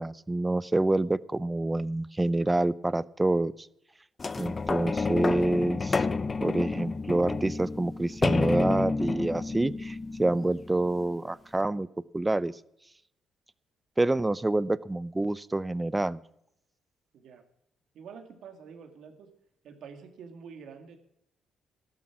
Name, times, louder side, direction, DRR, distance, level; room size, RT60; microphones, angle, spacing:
voice 1, 0.0-3.5 4.4-6.1 6.4-11.9 12.1-12.5 14.0-16.2, right 2 dB, 15° right, 19 dB, 0.5 m, -27 dB
sound 1, 4.2-11.0 11.6-11.7, left 3 dB, 30° left, 0.7 m, -30 dB
voice 2, 17.1-17.4 17.9-19.3 19.6-21.0, right 6 dB, 75° right, 6 dB, 2.3 m, -47 dB
13.5 x 12.0 x 6.0 m, 0.77 s
cardioid pair, 90°, 0 cm